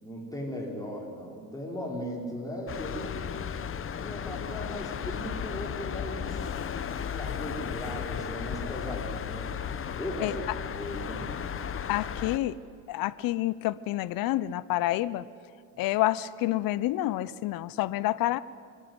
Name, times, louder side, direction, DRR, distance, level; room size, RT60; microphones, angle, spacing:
voice 1, 0.0-3.4 3.9-6.5 6.9-9.5 10.0-11.3, equal, 10° left, -1 dB, 5.0 m, -38 dB
sound 1, 2.7-12.4, left 8 dB, 30° left, 1.0 m, -35 dB
voice 2, 11.9-12.6 12.9-15.2 15.8-18.4, left 16 dB, 60° left, 18 dB, 0.8 m, -28 dB
25.5 x 10.5 x 9.8 m, 2.2 s
supercardioid pair, 105°, 39 cm